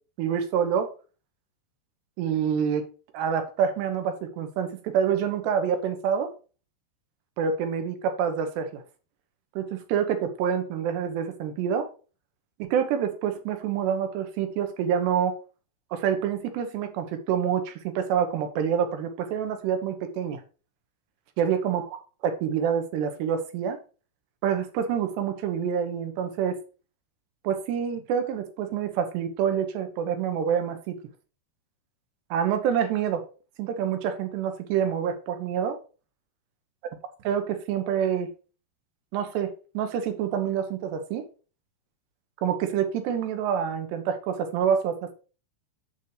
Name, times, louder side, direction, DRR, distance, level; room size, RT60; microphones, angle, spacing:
voice 1, 0.2-0.9 2.2-2.8 3.1-6.3 7.4-8.8 9.6-11.9 12.6-15.4 15.9-20.4 21.4-21.9 22.2-23.8 24.4-26.6 27.4-31.0 32.3-33.2 33.6-35.8 37.2-38.3 39.1-41.3 42.4-45.1, right 8 dB, 90° right, 3.3 m, -27 dB
8.2 x 7.8 x 3.3 m
omnidirectional pair, 4.7 m